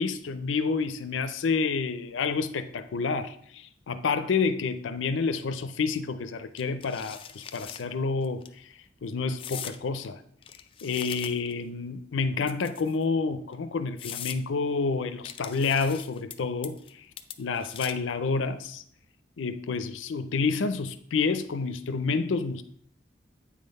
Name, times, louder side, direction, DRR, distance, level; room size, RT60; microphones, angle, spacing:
voice 1, 0.0-8.7 9.0-10.2 10.8-17.1 17.4-18.8 19.4-22.6, left 4 dB, 90° left, 0.5 m, -29 dB
sound 1, 6.6-7.8 8.2-8.5 9.4-9.8 10.4-11.6 12.4-13.0 13.5-13.6 14.0-14.4 15.2-16.3 16.6-16.9 17.2-18.1, left 9 dB, 30° left, 0.3 m, -41 dB
8.4 x 3.8 x 5.2 m
head